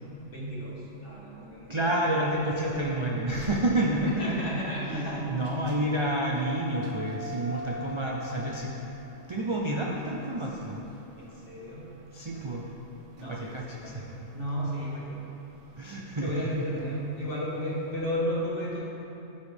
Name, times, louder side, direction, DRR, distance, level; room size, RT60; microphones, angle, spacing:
voice 1, 0.3-2.9 4.2-5.2 10.3-10.7 11.2-11.9 12.2-12.5 13.2-15.2 16.2-18.8, equal, 45° left, -6 dB, 1.8 m, -34 dB
voice 2, 1.7-4.4 4.8-8.7 9.3-10.8 12.1-12.6 13.3-14.0 15.8-16.6, right 1 dB, 40° right, -2 dB, 0.4 m, -29 dB
sound 1, 3.3-18.1, left 1 dB, 85° right, 1.1 m, -45 dB
12.0 x 5.5 x 3.5 m, 3.0 s
omnidirectional pair, 1.3 m